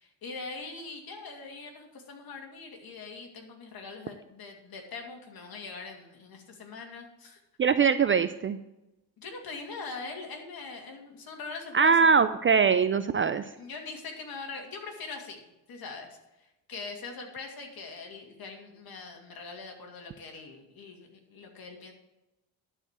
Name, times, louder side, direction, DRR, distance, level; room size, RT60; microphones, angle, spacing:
voice 1, 0.0-7.4 9.2-12.2 13.6-21.9, left 4 dB, 50° left, 2 dB, 2.7 m, -42 dB
voice 2, 7.6-8.6 11.7-13.4, right 6 dB, 30° right, 11 dB, 0.4 m, -22 dB
11.5 x 5.0 x 7.4 m, 0.95 s
cardioid pair, 95°, 45 cm